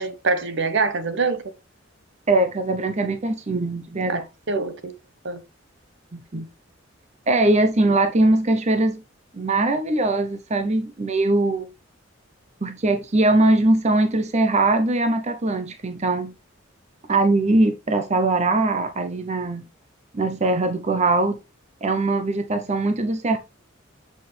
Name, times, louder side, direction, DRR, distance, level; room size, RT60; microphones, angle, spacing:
voice 1, 0.0-1.4 4.1-4.2 4.5-4.9 5.2-5.4, right 4 dB, 60° right, 1.0 m, -24 dB
voice 2, 2.3-4.3 6.1-6.5 7.3-9.0 9.3-11.7 12.6-16.3 17.1-19.7 20.1-21.4 21.8-23.4, right 2 dB, 35° right, 0.7 m, -21 dB
7.5 x 5.8 x 3.3 m
head